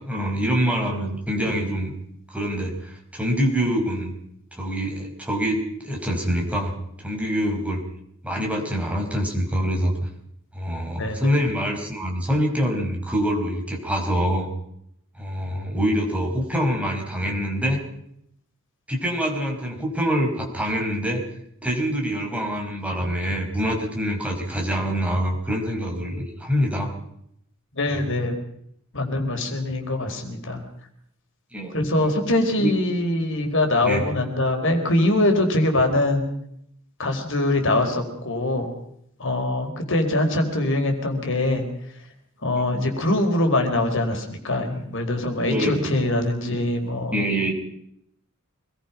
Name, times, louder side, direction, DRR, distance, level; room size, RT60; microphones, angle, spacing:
voice 1, 0.0-1.9 2.3-4.1 4.5-7.8 8.2-9.9 10.5-14.5 15.2-17.8 18.9-21.2 21.6-26.9 31.5-32.1 32.6-32.7 33.8-34.1 45.5-45.9 47.1-47.5, equal, 5° right, 0 dB, 4.9 m, -25 dB
voice 2, 11.0-11.3 27.7-28.4 28.9-30.6 31.7-36.3 37.0-38.7 39.2-41.6 42.4-47.2, left 1 dB, 60° left, 4 dB, 4.2 m, -23 dB
25.5 x 20.5 x 5.8 m, 0.74 s
head